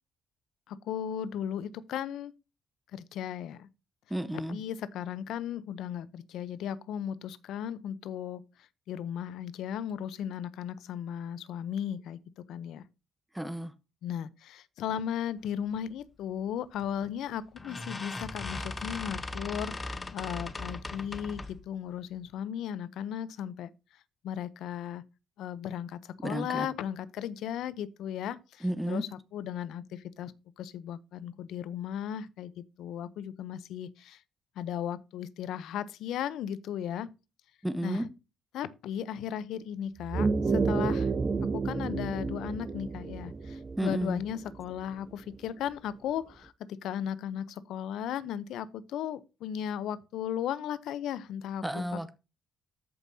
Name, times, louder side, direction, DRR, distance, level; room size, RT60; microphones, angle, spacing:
voice 1, 0.7-2.3 2.9-3.7 4.3-8.4 8.9-12.2 12.5-12.9 14.0-23.7 24.2-25.0 25.4-34.2 34.6-37.1 37.8-38.0 38.5-41.1 41.5-52.1, left 9 dB, 85° left, 0.7 m, -36 dB
voice 2, 4.1-4.6 13.3-13.7 26.2-26.7 28.6-29.0 37.6-38.1 43.8-44.2 51.6-52.1, right 1 dB, 5° right, 0.9 m, -32 dB
sound 1, 16.8-17.1 17.6-21.6, left 2 dB, 25° left, 1.0 m, -38 dB
sound 2, 40.0-44.8, right 4 dB, 30° right, 0.6 m, -30 dB
13.5 x 5.5 x 2.7 m
cardioid pair, 90°, 0 cm